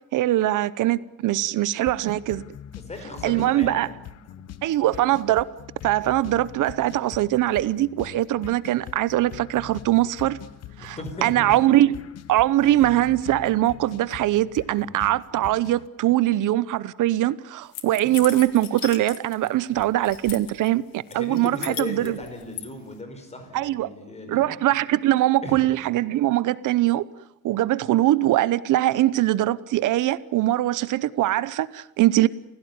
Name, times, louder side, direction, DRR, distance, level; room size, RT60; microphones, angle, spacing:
voice 1, 0.1-2.4 3.2-3.9 4.6-5.5 5.8-10.4 10.8-11.9 12.3-22.2 23.5-23.9 24.3-27.1 27.4-32.3, right 15 dB, 60° right, 0.9 m, -22 dB
sound 1, 1.9-15.9, left 11 dB, 45° left, 1.0 m, -43 dB
voice 2, 2.7-3.9 4.3-4.4 10.8-11.5 12.6-12.8 14.7-14.9 18.0-18.2 21.1-24.5 25.4-25.7, left 2 dB, 20° left, 5.0 m, -37 dB
sound 2, 17.7-19.5 19.8-20.7 21.1-22.7, left 13 dB, 75° left, 2.3 m, -37 dB
29.0 x 16.5 x 9.6 m
cardioid pair, 170°, 34 cm